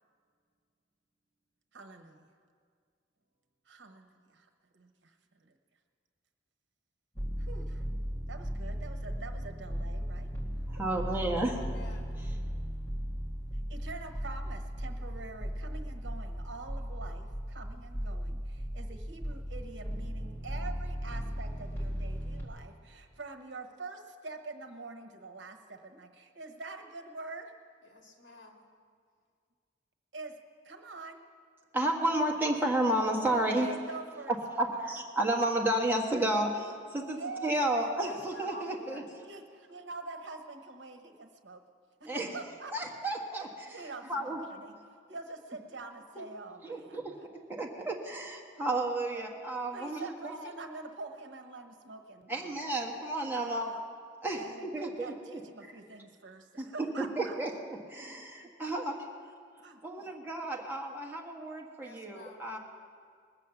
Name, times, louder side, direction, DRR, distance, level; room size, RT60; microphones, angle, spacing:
voice 1, 1.7-2.3 3.6-5.6 7.4-7.8 8.3-10.3 11.1-11.3 13.5-27.5 30.1-30.4 30.6-31.2 33.3-34.3 34.7-34.9 37.1-38.1 39.2-41.6 42.0-42.7 43.7-47.1 49.0-49.3 49.7-52.6 53.3-53.8 54.3-57.4 58.4-58.8 59.6-60.1, right 3 dB, 70° right, 5 dB, 1.1 m, -45 dB
sound 1, 7.1-22.4, equal, 15° left, 2.0 m, -37 dB
voice 2, 10.7-11.6 31.7-33.7 34.3-39.0 42.1-42.3 42.7-43.8 44.1-44.4 46.2-46.3 46.6-50.5 52.3-53.7 54.2-55.4 56.6-56.7 57.0-59.0 59.8-62.6, right 1 dB, 10° right, -1 dB, 1.4 m, -32 dB
voice 3, 11.5-12.1 27.8-28.6 38.0-39.1 61.8-62.4, left 2 dB, 80° left, 1 dB, 2.2 m, -49 dB
21.0 x 7.3 x 7.0 m, 2.1 s
head